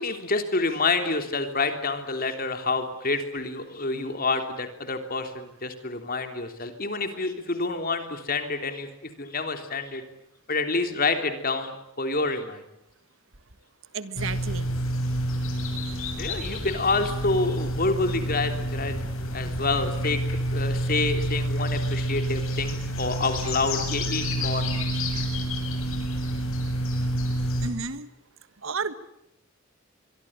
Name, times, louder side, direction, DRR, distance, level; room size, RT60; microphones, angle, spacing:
voice 1, 0.0-8.9 9.2-10.0 10.5-12.6 16.2-20.2 20.5-24.8, left 3 dB, 45° left, 7 dB, 3.3 m, -28 dB
voice 2, 13.9-14.7 27.6-28.1 28.6-28.9, right 4 dB, 70° right, 13 dB, 1.5 m, -32 dB
sound 1, 14.2-27.7, equal, 75° left, 7.1 m, -28 dB
24.5 x 23.5 x 8.9 m, 0.82 s
head